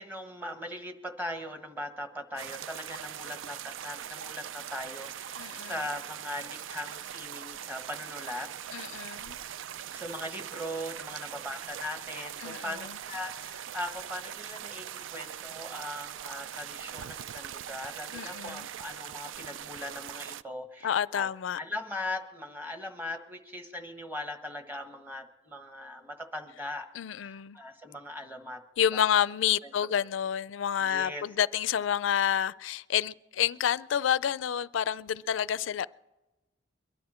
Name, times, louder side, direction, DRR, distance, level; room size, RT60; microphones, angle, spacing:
voice 1, 0.0-9.0 9.9-21.3 21.6-26.9 27.2-28.6 28.9-29.0 29.6-29.7 30.8-31.2, left 1 dB, 10° right, 1.4 m, -40 dB
sound 1, 2.4-20.4, right 10 dB, 85° right, 0.4 m, -41 dB
voice 2, 5.4-5.7 8.7-9.4 12.4-12.8 18.1-18.7 20.8-21.6 27.0-27.6 28.8-35.9, left 9 dB, 80° left, 0.4 m, -29 dB
22.5 x 11.5 x 4.3 m
head